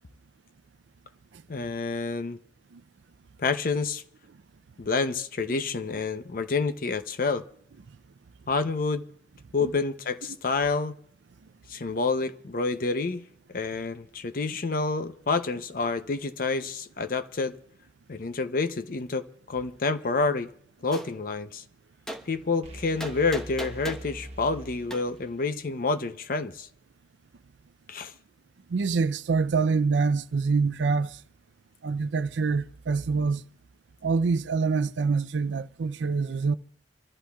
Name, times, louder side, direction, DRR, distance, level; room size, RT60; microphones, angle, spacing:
voice 1, 1.5-2.4 3.4-4.0 4.8-7.4 8.5-9.0 9.5-11.0 11.7-13.2 13.5-17.6 18.1-20.5 20.8-21.6 22.3-26.7 27.9-28.1, left 4 dB, 50° left, 0.7 m, -28 dB
Gunshot gunfire, 20.9-21.1 22.1-22.2 23.0-24.1 24.9-25.0, equal, 5° left, 1.0 m, -36 dB
sound 1, 22.6-25.5, right 1 dB, 35° right, 1.1 m, -43 dB
voice 2, 28.7-31.2 31.8-33.4 34.0-36.5, right 4 dB, 90° right, 0.5 m, -25 dB
26.5 x 14.0 x 2.3 m
head